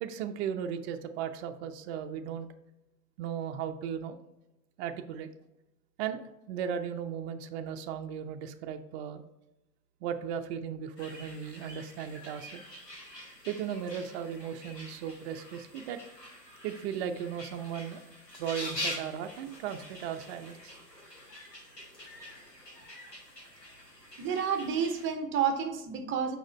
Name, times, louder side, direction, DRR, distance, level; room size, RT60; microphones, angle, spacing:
voice 1, 0.0-2.5 3.2-4.2 4.8-5.3 6.0-6.2 6.5-9.2 10.0-12.6 13.5-16.0 16.6-18.0 18.4-20.8, right 8 dB, 45° right, 7 dB, 0.6 m, -36 dB
sound 1, 11.0-25.1, left 1 dB, 90° left, 2.2 m, -45 dB
voice 2, 24.2-26.4, right 7 dB, 25° right, 6 dB, 0.9 m, -30 dB
6.3 x 5.0 x 3.3 m, 0.93 s
figure-of-eight pair, 90°, 48 cm